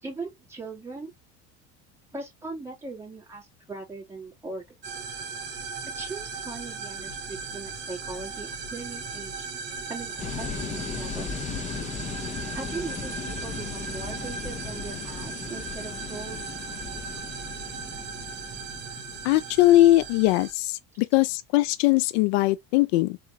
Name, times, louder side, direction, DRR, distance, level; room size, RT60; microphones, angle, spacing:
voice 1, 0.0-1.1 2.1-4.7 5.8-9.5 9.9-11.3 12.5-16.4 20.9-21.0, right 3 dB, 10° right, 2.7 m, -39 dB
sound 1, 4.8-20.5, right 5 dB, 35° right, 1.8 m, -37 dB
sound 2, 10.2-19.9, left 6 dB, 25° left, 0.7 m, -37 dB
voice 2, 19.2-23.2, left 16 dB, 80° left, 0.5 m, -21 dB
4.1 x 3.1 x 3.5 m
cardioid pair, 140°, 32 cm